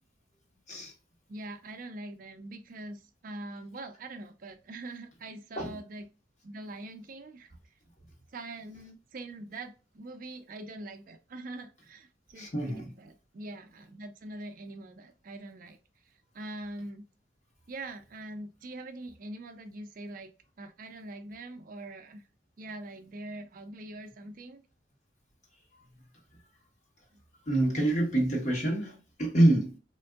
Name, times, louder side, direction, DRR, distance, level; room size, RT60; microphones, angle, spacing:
voice 1, 1.3-6.0 6.4-7.5 8.3-17.1 17.7-20.3 20.6-22.2 22.6-24.6 27.1-27.2, right 2 dB, 45° right, 0.4 m, -43 dB
voice 2, 12.3-12.9 25.8-26.0 27.5-29.8, right 1 dB, 40° left, 1.2 m, -26 dB
3.6 x 2.5 x 2.3 m
head